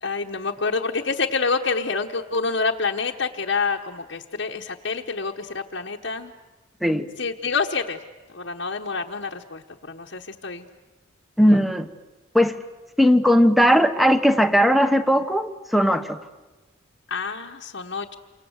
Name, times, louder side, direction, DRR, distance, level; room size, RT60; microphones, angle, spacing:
voice 1, 0.0-6.3 7.2-8.0 8.3-10.7 11.5-11.6 17.1-18.1, left 4 dB, 65° left, -1 dB, 1.2 m, -27 dB
voice 2, 11.4-11.9 12.3-12.5 13.0-16.2, equal, ahead, 10 dB, 1.1 m, -18 dB
28.5 x 25.0 x 8.1 m, 1.2 s
head